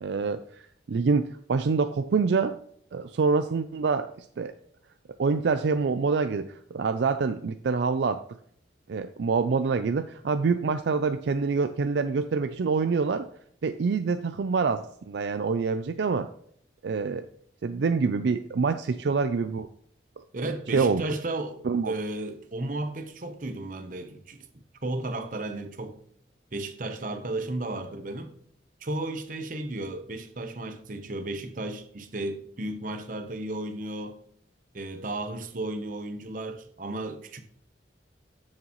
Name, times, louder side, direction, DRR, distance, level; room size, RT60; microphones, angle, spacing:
voice 1, 0.0-2.6 2.9-4.5 5.2-8.2 8.9-13.3 13.6-16.3 16.8-17.2 17.6-19.7 20.2-20.3 20.7-21.0 21.6-21.9, right 4 dB, 70° right, 0.4 m, -26 dB
voice 2, 20.3-24.5 24.8-26.0 26.5-28.3 28.8-34.2 34.7-37.4, right 2 dB, 45° right, 0.9 m, -34 dB
11.0 x 6.5 x 3.0 m
head